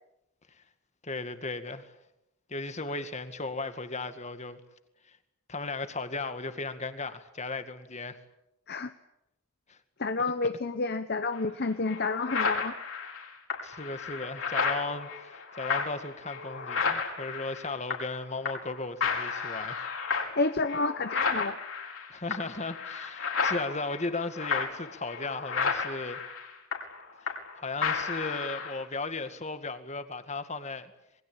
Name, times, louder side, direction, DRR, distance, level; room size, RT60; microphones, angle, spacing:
voice 1, 1.0-1.9 2.5-4.6 5.1-5.2 5.5-8.2 9.7-9.8 13.6-19.9 22.1-26.2 27.2-27.3 27.6-30.9, left 3 dB, 30° left, 9 dB, 2.0 m, -36 dB
voice 2, 10.0-12.7 20.4-21.6, left 3 dB, 45° left, 10 dB, 1.0 m, -29 dB
sound 1, 11.3-11.4 11.9-18.2 18.4-18.7 19.0-27.5 27.8-28.8, left 5 dB, 65° left, 5.3 m, -32 dB
27.0 x 22.0 x 8.9 m, 0.86 s
head